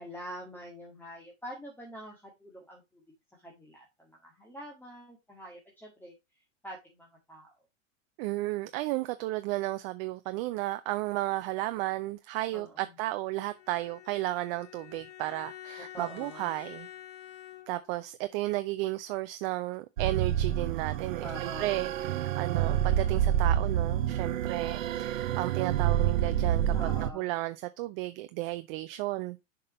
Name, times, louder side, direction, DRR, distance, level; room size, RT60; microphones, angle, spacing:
voice 1, 0.0-3.0 3.4-6.1 6.6-7.5 12.5-12.9 15.9-16.5 21.2-21.9 26.7-27.3, equal, 5° left, 2.0 m, -45 dB
voice 2, 8.2-16.9 17.7-29.5, right 18 dB, 45° right, 0.6 m, -33 dB
Bowed string instrument, 13.5-18.0, left 12 dB, 35° left, 2.5 m, -48 dB
sound 1, 20.0-27.1, right 10 dB, 75° right, 0.9 m, -28 dB
6.6 x 5.4 x 4.2 m
hypercardioid pair, 110°, 39 cm